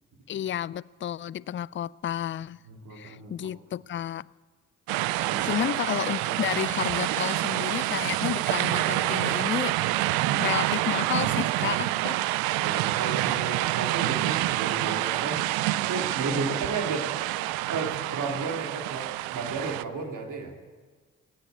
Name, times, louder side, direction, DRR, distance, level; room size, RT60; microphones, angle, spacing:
voice 1, 0.3-2.6 2.9-4.3 5.4-9.8 10.3-12.2, left 11 dB, 35° left, 0.4 m, -31 dB
voice 2, 2.7-3.5 5.2-5.6 6.2-6.4 10.0-10.4 12.5-15.4 15.9-17.1 17.7-20.5, right 4 dB, 60° right, 2.6 m, -34 dB
sound 1, 4.9-19.8, right 16 dB, 85° right, 0.5 m, -27 dB
17.0 x 9.1 x 8.1 m
hypercardioid pair, 45°, 35 cm